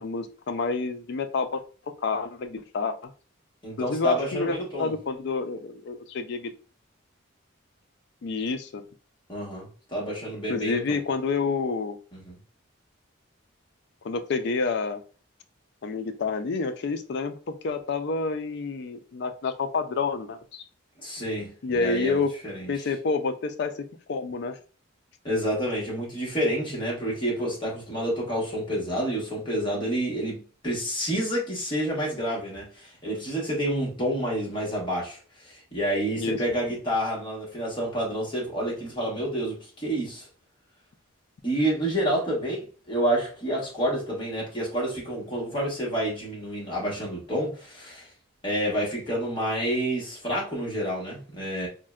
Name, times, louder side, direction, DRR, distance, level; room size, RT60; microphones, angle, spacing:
voice 1, 0.0-1.6 2.0-3.1 3.8-6.5 8.2-8.8 10.5-12.0 14.0-15.0 15.8-17.3 17.6-20.6 21.6-22.3 22.7-23.7 24.1-24.6 36.2-36.4, left 4 dB, 55° left, 0.4 m, -28 dB
voice 2, 3.6-4.9 9.3-11.0 12.1-12.4 21.0-21.5 21.8-22.7 25.2-40.3 41.4-48.1 48.4-51.7, equal, 25° left, 1.2 m, -29 dB
3.7 x 2.1 x 2.3 m
head